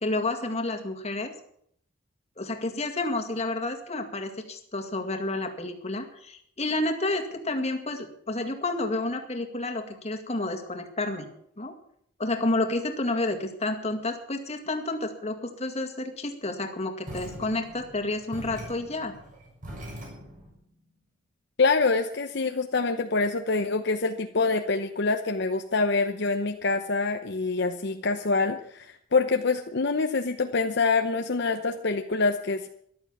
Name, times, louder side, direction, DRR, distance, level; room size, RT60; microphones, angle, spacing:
voice 1, 0.0-1.3 2.4-11.3 11.6-11.7 12.2-19.1, left 2 dB, 35° left, 5 dB, 2.1 m, -30 dB
sound 1, 17.0-20.5, equal, 45° right, 7.0 m, -42 dB
voice 2, 21.6-32.7, left 3 dB, 60° left, 6 dB, 0.8 m, -25 dB
14.0 x 12.0 x 7.2 m, 0.66 s
head